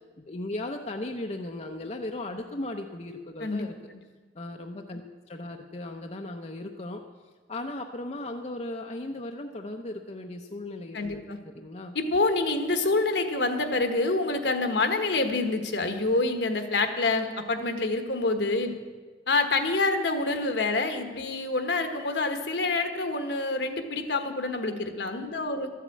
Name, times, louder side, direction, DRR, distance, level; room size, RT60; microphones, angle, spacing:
voice 1, 0.2-3.7 4.3-7.0 7.5-12.0, left 2 dB, 35° left, 3 dB, 0.7 m, -37 dB
voice 2, 10.9-11.4 11.9-18.7 19.3-25.7, left 3 dB, 70° left, 7 dB, 1.4 m, -27 dB
13.0 x 8.3 x 8.5 m, 1.5 s
head